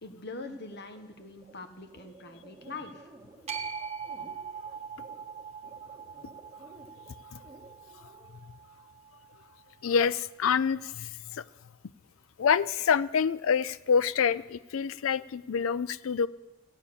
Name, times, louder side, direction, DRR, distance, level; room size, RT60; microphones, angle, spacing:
voice 1, 0.0-3.1, left 3 dB, 55° left, 7 dB, 1.3 m, -43 dB
sound 1, 0.7-8.3, right 2 dB, 15° right, 1.8 m, -54 dB
sound 2, 3.5-9.7, right 6 dB, 30° right, 1.0 m, -42 dB
voice 2, 9.8-11.4 12.4-16.3, left 6 dB, 85° left, 18 dB, 0.4 m, -27 dB
15.5 x 8.8 x 6.8 m, 1.1 s
head